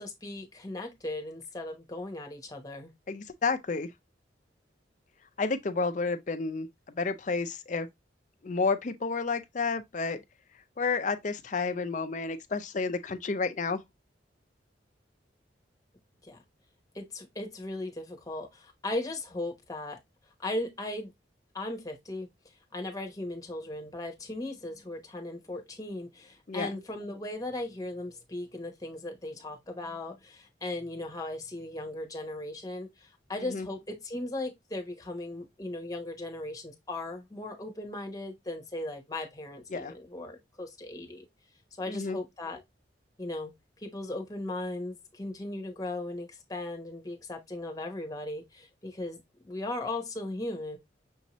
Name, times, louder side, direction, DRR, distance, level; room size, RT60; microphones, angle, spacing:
voice 1, 0.0-2.9 16.2-16.4 16.9-20.0 20.4-21.1 21.5-22.3 22.7-41.2 41.8-42.6 43.2-43.5 43.8-50.8, left 2 dB, 20° left, 1.0 m, -37 dB
voice 2, 3.1-3.9 5.4-7.9 8.4-10.2 10.8-13.8 26.5-26.8 33.4-33.7 39.7-39.9 41.9-42.2, left 4 dB, 40° left, 0.5 m, -31 dB
6.2 x 2.7 x 3.0 m
head